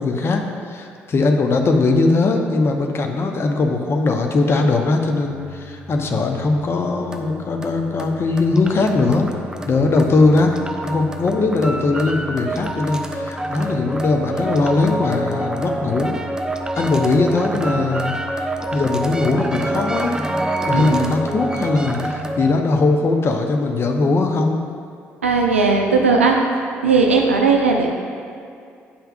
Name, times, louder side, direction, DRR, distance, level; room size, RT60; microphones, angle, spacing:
voice 1, 0.0-9.3 9.7-10.5 10.8-16.2 16.8-18.2 18.7-20.2 20.7-24.6, left 3 dB, 40° left, 3 dB, 0.7 m, -19 dB
sound 1, 5.2-22.6, right 1 dB, 10° right, 0.6 m, -27 dB
voice 2, 20.7-21.1 25.2-26.5 26.8-27.9, right 4 dB, 85° right, 2 dB, 0.5 m, -17 dB
8.5 x 5.6 x 2.4 m, 2.4 s
figure-of-eight pair, 45°, 7 cm